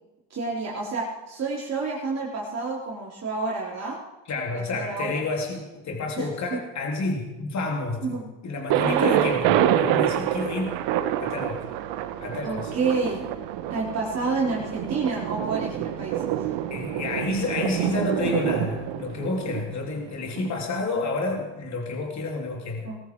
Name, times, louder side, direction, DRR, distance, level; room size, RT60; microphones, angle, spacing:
voice 1, 0.3-4.0 4.5-5.1 6.2-6.3 8.0-8.2 8.8-9.3 12.4-13.3 13.7-16.5 22.8-23.0, right 4 dB, 30° right, -5 dB, 3.7 m, -29 dB
voice 2, 4.2-10.8 11.2-11.6 12.2-12.8 16.7-22.9, left 3 dB, 35° left, 1 dB, 3.1 m, -30 dB
Thunder, 8.7-20.5, right 11 dB, 60° right, 1.3 m, -27 dB
20.0 x 13.5 x 4.6 m, 1.1 s
supercardioid pair, 105°, 49 cm